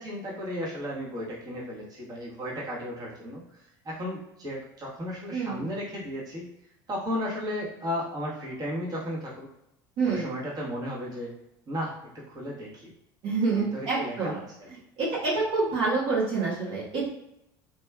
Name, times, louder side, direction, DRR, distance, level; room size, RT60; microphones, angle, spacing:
voice 1, 0.0-6.5 6.9-9.5 10.1-11.3 11.7-12.9 13.6-14.7, equal, 40° right, -5 dB, 1.4 m, -35 dB
voice 2, 5.3-5.7 10.0-10.3 13.2-14.4 15.0-17.1, right 4 dB, 60° right, -6 dB, 1.2 m, -27 dB
3.1 x 2.9 x 2.3 m, 0.82 s
hypercardioid pair, 85°, 10 cm